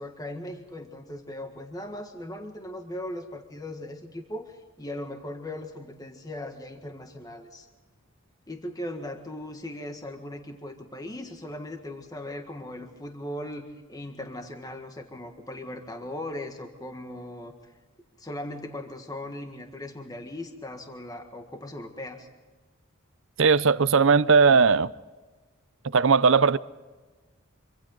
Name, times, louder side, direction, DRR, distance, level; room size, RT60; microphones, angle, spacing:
voice 1, 0.0-7.7 8.5-17.7 18.2-22.3, left 1 dB, 20° left, 1.7 m, -38 dB
voice 2, 23.4-24.9 25.9-26.6, right 5 dB, 65° right, 0.6 m, -18 dB
26.0 x 25.5 x 3.9 m
head